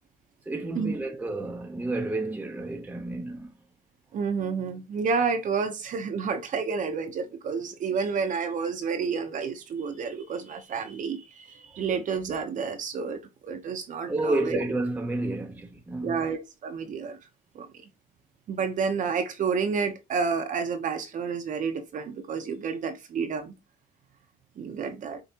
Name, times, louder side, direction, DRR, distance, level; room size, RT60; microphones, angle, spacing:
voice 1, 0.5-3.5 14.1-16.2, right 2 dB, 10° right, 0.8 m, -30 dB
voice 2, 4.1-14.6 16.0-17.2 17.5-17.7 18.5-23.5 24.6-25.2, right 5 dB, 50° right, 0.9 m, -30 dB
5.1 x 3.6 x 2.9 m
cardioid pair, 110°, 17 cm